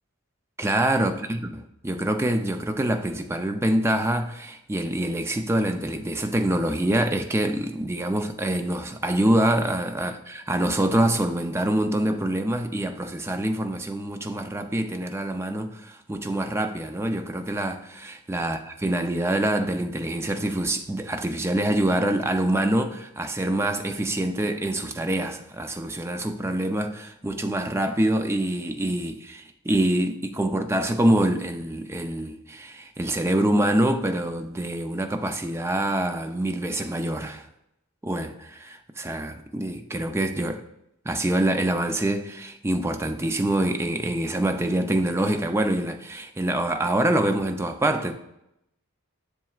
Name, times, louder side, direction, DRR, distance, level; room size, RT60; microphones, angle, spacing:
voice 1, 0.6-1.4 1.8-37.5 38.0-40.6 41.1-48.1, right 1 dB, 10° right, 0.4 m, -25 dB
7.4 x 6.7 x 2.3 m
head